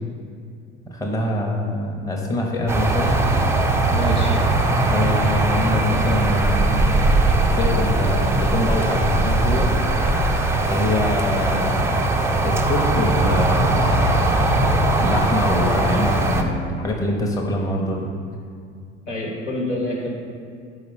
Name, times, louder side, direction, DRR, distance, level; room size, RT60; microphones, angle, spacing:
voice 1, 0.9-3.2 4.9-6.9 7.5-9.7 10.6-13.9 15.0-18.1, left 1 dB, 10° left, 0 dB, 0.8 m, -24 dB
sound 1, 2.7-16.4, right 2 dB, 10° right, 0.4 m, -20 dB
voice 2, 3.8-4.4 19.1-20.2, left 1 dB, 75° left, -2 dB, 1.3 m, -27 dB
4.9 x 4.8 x 4.9 m, 2.3 s
figure-of-eight pair, 65°, 35 cm